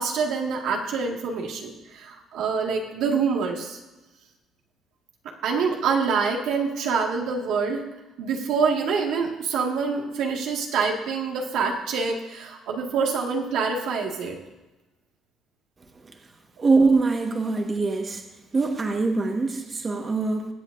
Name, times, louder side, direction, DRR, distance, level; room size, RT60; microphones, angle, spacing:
voice 1, 0.0-3.8 5.4-7.8 8.2-14.4, right 5 dB, 80° right, 0 dB, 2.0 m, -26 dB
voice 2, 16.6-18.2 18.5-20.5, right 3 dB, 30° right, 2 dB, 1.5 m, -23 dB
21.5 x 8.2 x 2.7 m, 1.1 s
cardioid pair, 115°, 0 cm